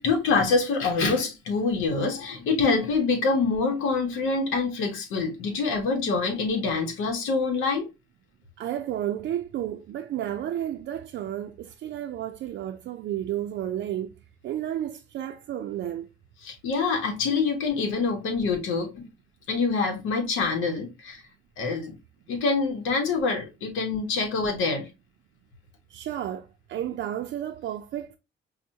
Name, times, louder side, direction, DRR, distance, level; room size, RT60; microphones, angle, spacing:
voice 1, 0.0-7.9 16.4-19.1 19.5-21.2 21.6-21.9 22.3-24.9, left 4 dB, 90° left, 0.8 m, -25 dB
voice 2, 8.6-14.1 14.4-16.1 25.9-28.2, right 11 dB, 65° right, 0.4 m, -32 dB
5.3 x 2.1 x 2.7 m
cardioid pair, 90°, 20 cm